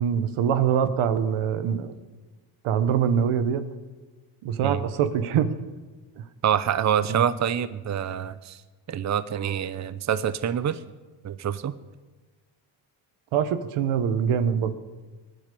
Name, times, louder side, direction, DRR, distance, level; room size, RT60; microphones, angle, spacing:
voice 1, 0.0-1.9 2.6-3.6 4.4-5.5 6.2-6.3 7.1-7.2 13.3-14.7, right 8 dB, 85° right, 11 dB, 1.4 m, -24 dB
voice 2, 6.4-8.6 8.9-10.8 11.2-11.7, right 9 dB, 35° right, 15 dB, 0.7 m, -26 dB
19.5 x 10.5 x 6.9 m, 1.3 s
cardioid pair, 100°, 48 cm